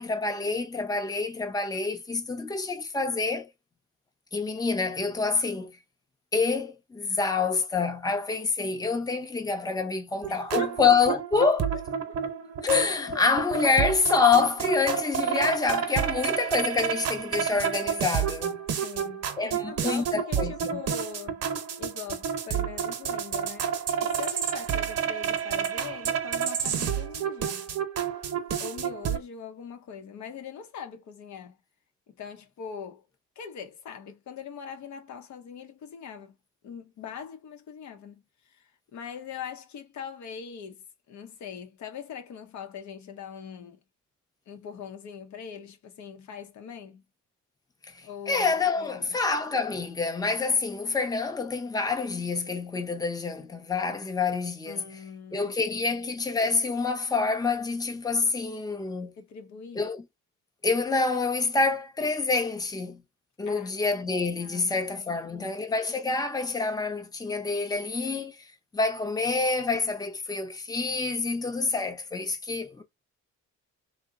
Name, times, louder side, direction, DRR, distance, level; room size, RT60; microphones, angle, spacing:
voice 1, 0.0-3.5 4.3-5.7 6.3-11.7 12.6-18.6 19.4-20.8 47.9-48.0 48.3-54.8 55.3-59.1 59.7-60.0 60.6-63.0 63.4-68.4 68.7-72.8, left 4 dB, 10° left, 0.7 m, -27 dB
sound 1, 10.2-29.2, right 8 dB, 55° right, 0.8 m, -30 dB
voice 2, 10.3-10.8 11.1-11.5 13.0-13.3 13.6-13.7 18.7-21.4 21.8-23.7 24.0-27.7 28.6-31.6 32.1-33.0 33.4-36.4 36.6-43.8 44.5-47.0 48.0-49.2 54.7-56.0 59.2-59.8 63.5-64.0 64.4-65.6, left 7 dB, 70° left, 0.8 m, -42 dB
2.8 x 2.1 x 3.7 m
cardioid pair, 90°, 30 cm